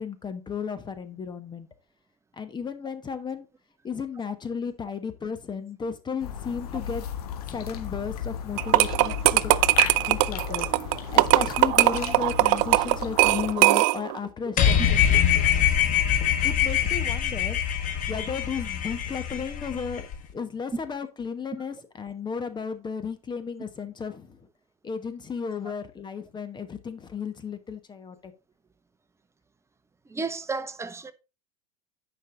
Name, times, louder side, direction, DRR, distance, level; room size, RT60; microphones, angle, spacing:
voice 1, 0.0-1.7 2.4-3.5 3.8-7.1 7.5-9.5 9.8-10.7 11.1-15.2 16.4-17.7 18.1-20.1 20.3-24.4 24.8-28.3, left 6 dB, 20° left, 1.2 m, -34 dB
sound 1, 6.2-13.5, left 9 dB, 75° left, 1.7 m, -34 dB
sound 2, 8.6-14.2, right 21 dB, 60° right, 0.4 m, -20 dB
sound 3, 14.6-20.2, left 9 dB, 40° left, 1.6 m, -24 dB
voice 2, 30.1-31.1, right 4 dB, 15° right, 0.9 m, -32 dB
9.3 x 5.6 x 3.9 m
hypercardioid pair, 95°, 20 cm